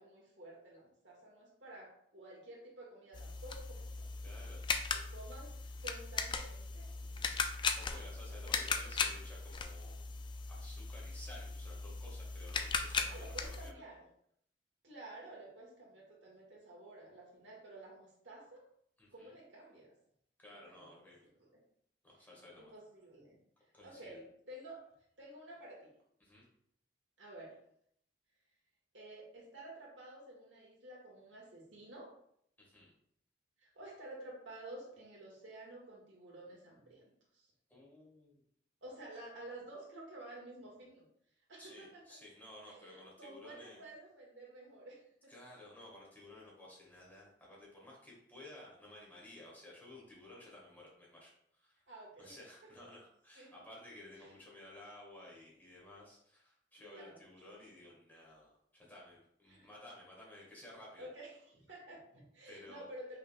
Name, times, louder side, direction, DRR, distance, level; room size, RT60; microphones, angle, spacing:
voice 1, 0.0-4.1 5.1-7.4 7.7-8.9 13.1-14.0 14.8-18.6 19.1-19.9 20.5-21.5 22.2-23.4 23.8-24.8 25.2-25.9 27.2-27.6 28.9-32.1 33.6-37.0 37.3-37.5 38.8-41.0 41.5-42.0 42.6-45.3 51.9-52.4 53.3-53.5 54.2-54.4 56.8-57.3 59.5-59.7 61.0-63.2, right 1 dB, 80° right, -3 dB, 1.7 m, -52 dB
sound 1, 3.1-13.7, left 4 dB, 25° left, 0.3 m, -38 dB
voice 2, 4.2-4.6 7.7-10.0 10.5-13.7 19.0-19.3 20.4-21.2 22.0-22.7 23.7-24.2 26.2-26.5 32.6-32.9 37.7-38.4 41.6-43.8 45.3-51.8 52.2-61.1 62.4-62.9, left 1 dB, 10° left, -4 dB, 1.5 m, -55 dB
5.6 x 3.7 x 2.3 m, 0.69 s
head